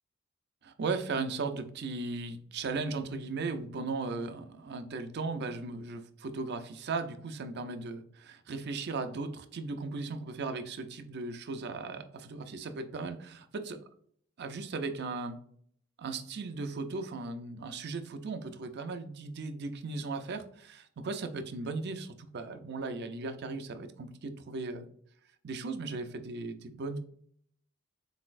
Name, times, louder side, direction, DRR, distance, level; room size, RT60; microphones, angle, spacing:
voice 1, 0.6-13.8 14.4-15.4 16.0-24.9 25.4-27.0, right 3 dB, 50° right, 9 dB, 0.4 m, -37 dB
4.0 x 4.0 x 2.5 m, 0.63 s
head